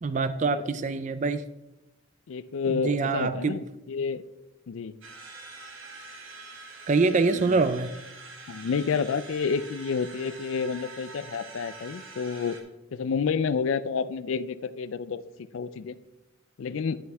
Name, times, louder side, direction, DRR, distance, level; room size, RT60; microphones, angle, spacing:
voice 1, 0.0-1.4 2.7-3.6 6.9-7.9, right 4 dB, 35° right, 12 dB, 0.3 m, -25 dB
voice 2, 2.3-4.2 4.7-4.9 7.3-7.6 8.5-12.6 12.9-15.2 15.5-16.0 16.6-17.0, left 5 dB, 65° left, 15 dB, 0.4 m, -29 dB
sound 1, 5.0-12.6, right 3 dB, 65° right, 1.5 m, -45 dB
10.5 x 6.9 x 3.5 m, 0.95 s
head